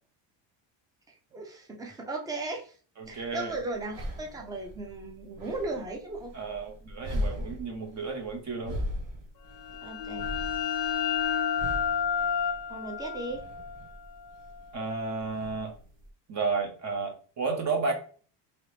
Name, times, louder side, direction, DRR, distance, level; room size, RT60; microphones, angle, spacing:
voice 1, 1.1-2.8 3.1-6.3 9.8-10.3 12.7-13.4, right 2 dB, 10° right, 2 dB, 0.5 m, -36 dB
voice 2, 3.0-3.5 6.3-8.8 14.7-15.7 16.3-17.9, right 4 dB, 35° right, 3 dB, 0.9 m, -32 dB
sound 1, 3.0-16.1, equal, 65° right, 1.0 m, -40 dB
sound 2, 9.5-15.0, left 8 dB, 50° left, 0.5 m, -31 dB
2.9 x 2.9 x 3.2 m, 0.42 s
cardioid pair, 140°, 49 cm